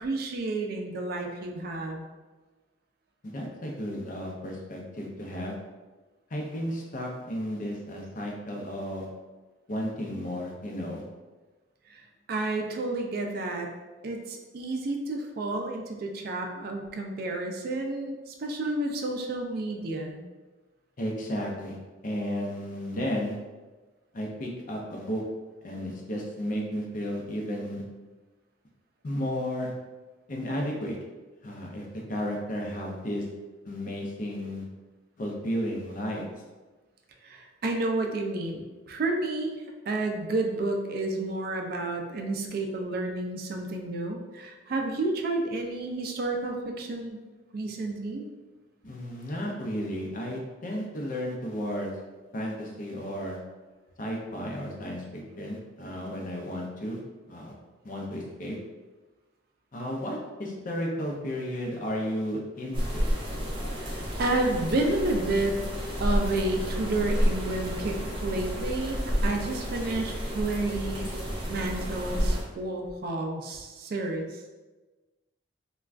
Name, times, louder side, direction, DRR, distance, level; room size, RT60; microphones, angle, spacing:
voice 1, 0.0-2.0 11.9-12.0 12.3-13.7 14.0-20.2 37.2-39.5 39.9-47.2 47.5-48.2 63.8-63.9 64.2-65.6 66.0-71.1 71.5-74.4, right 2 dB, 50° right, 2 dB, 0.4 m, -30 dB
voice 2, 3.2-5.6 6.3-9.1 9.7-11.0 21.0-21.8 22.0-23.4 24.1-25.2 25.6-27.8 29.0-29.7 30.3-31.0 31.4-33.3 33.7-34.6 35.2-36.3 48.8-51.9 52.3-53.4 54.0-57.0 57.3-57.5 57.8-58.6 59.7-63.1, equal, 45° left, -1 dB, 0.5 m, -33 dB
sound 1, 62.7-72.4, equal, 30° right, 0.7 m, -30 dB
3.3 x 2.2 x 2.4 m, 1.2 s
head